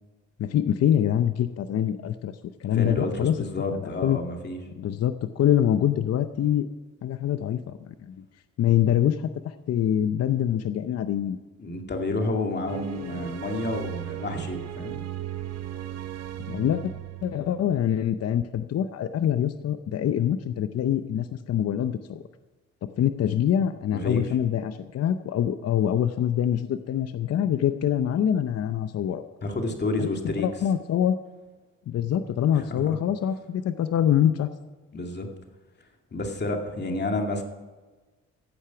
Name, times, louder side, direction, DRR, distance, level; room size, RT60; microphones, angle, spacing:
voice 1, 0.4-2.3 2.6-3.4 3.8-4.2 4.8-6.7 7.0-8.2 8.6-11.4 16.5-16.9 17.2-22.2 22.8-29.2 30.0-30.1 30.4-31.2 31.9-34.5, left 10 dB, 55° left, 11 dB, 0.7 m, -25 dB
voice 2, 2.7-4.6 11.6-15.0 23.9-24.3 29.4-30.5 32.5-33.0 34.9-35.3 36.1-37.4, left 2 dB, 35° left, 3 dB, 2.3 m, -30 dB
sound 1, 12.7-17.8, right 12 dB, 55° right, 0.9 m, -36 dB
15.0 x 8.2 x 5.9 m, 1.3 s
cardioid pair, 90°, 30 cm